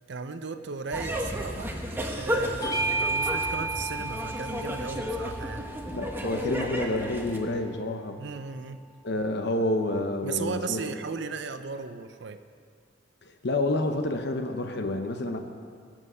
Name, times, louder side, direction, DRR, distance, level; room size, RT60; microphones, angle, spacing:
voice 1, 0.1-1.7 2.1-5.6 8.2-8.8 10.2-12.4, right 5 dB, 65° right, 10 dB, 0.6 m, -36 dB
sound 1, 0.9-7.4, equal, 10° right, 1.1 m, -33 dB
Bell / Doorbell, 2.6-7.5, right 2 dB, 20° left, 0.9 m, -33 dB
voice 2, 5.9-8.2 9.0-11.0 13.4-15.4, left 2 dB, 60° left, 6 dB, 0.9 m, -29 dB
21.0 x 7.5 x 5.6 m, 2.2 s
head